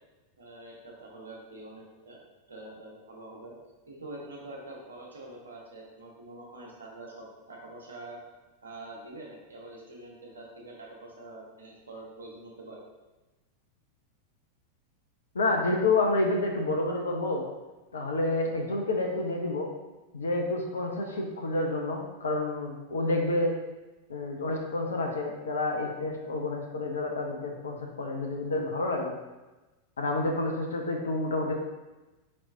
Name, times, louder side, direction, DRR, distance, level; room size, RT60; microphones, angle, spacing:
voice 1, 0.4-3.5 3.9-8.2 8.6-12.8, right 2 dB, 70° right, -3 dB, 1.1 m, -45 dB
voice 2, 15.3-17.5 17.9-19.7 20.1-23.5 24.1-29.2 30.0-31.5, left 2 dB, 70° left, 1 dB, 0.5 m, -29 dB
4.5 x 4.2 x 2.6 m, 1.1 s
figure-of-eight pair, 90°, 0 cm